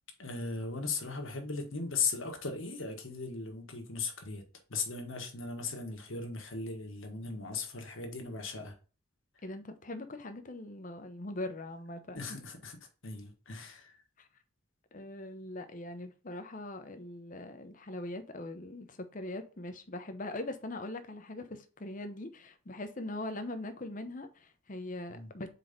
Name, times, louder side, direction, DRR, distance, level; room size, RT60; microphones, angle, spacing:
voice 1, 0.2-4.4 4.7-8.7 12.1-12.8 13.0-14.0 25.1-25.3, left 4 dB, 65° left, 1.4 m, -37 dB
voice 2, 9.4-12.2 14.2-14.3 14.9-25.5, left 2 dB, 40° left, 0.7 m, -41 dB
4.5 x 4.2 x 5.1 m
head